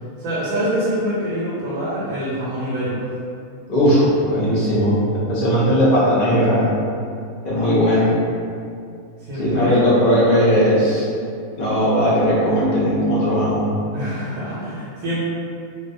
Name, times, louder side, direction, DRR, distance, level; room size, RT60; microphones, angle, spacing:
voice 1, 0.2-3.1 7.5-7.8 9.3-9.8 13.9-15.2, equal, 85° right, -9 dB, 1.1 m, -25 dB
voice 2, 3.7-6.7 7.4-8.1 9.4-11.1 11.6-13.7, equal, 45° left, -8 dB, 0.5 m, -17 dB
2.4 x 2.3 x 2.5 m, 2.4 s
omnidirectional pair, 1.4 m